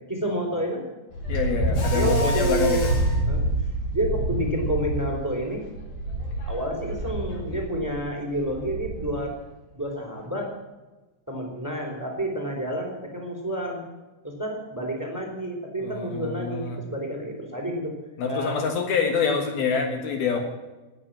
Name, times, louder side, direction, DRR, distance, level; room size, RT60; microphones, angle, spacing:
voice 1, 0.1-0.8 1.9-2.9 3.3-3.4 3.9-5.6 6.4-9.3 9.8-10.5 11.3-13.8 14.2-18.0 18.3-18.7, right 1 dB, 5° right, 1 dB, 3.4 m, -29 dB
Wind, 1.1-9.3, right 1 dB, 85° left, 6.0 m, -27 dB
voice 2, 1.3-2.8 15.8-16.8 18.2-20.4, left 5 dB, 70° left, 5 dB, 3.3 m, -26 dB
Mechanisms, 1.7-3.2, left 1 dB, 45° left, 3.2 m, -34 dB
19.0 x 9.9 x 7.6 m, 1.1 s
omnidirectional pair, 4.8 m